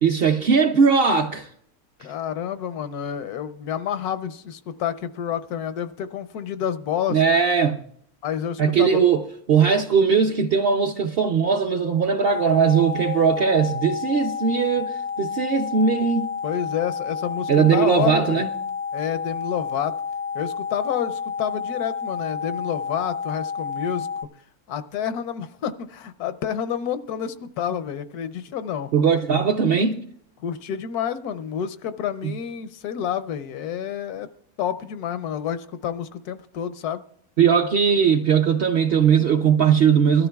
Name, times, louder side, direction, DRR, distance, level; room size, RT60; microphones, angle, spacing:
voice 1, 0.0-1.5 7.1-7.8 8.6-16.3 17.5-18.5 28.9-30.0 32.2-32.3 37.4-40.3, right 6 dB, 55° right, 0.6 m, -19 dB
voice 2, 2.0-7.2 8.2-9.0 16.4-18.4 18.9-19.9 20.3-24.3 24.7-28.9 30.4-34.3 34.6-37.0, left 9 dB, 85° left, 1.2 m, -29 dB
sound 1, 12.2-24.2, left 6 dB, 40° left, 0.5 m, -30 dB
21.5 x 13.5 x 2.3 m
omnidirectional pair, 1.6 m